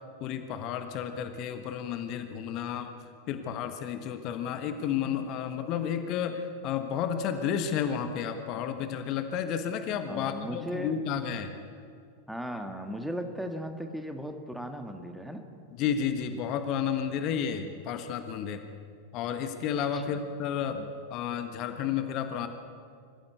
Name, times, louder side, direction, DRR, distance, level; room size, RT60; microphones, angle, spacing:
voice 1, 0.2-2.9 3.3-11.5 15.8-18.6 19.1-22.5, left 8 dB, 40° left, 8 dB, 1.4 m, -32 dB
voice 2, 10.0-11.0 12.3-15.6 19.9-20.2, equal, ahead, 5 dB, 1.8 m, -37 dB
25.5 x 15.0 x 8.2 m, 2.3 s
figure-of-eight pair, 90°, 0 cm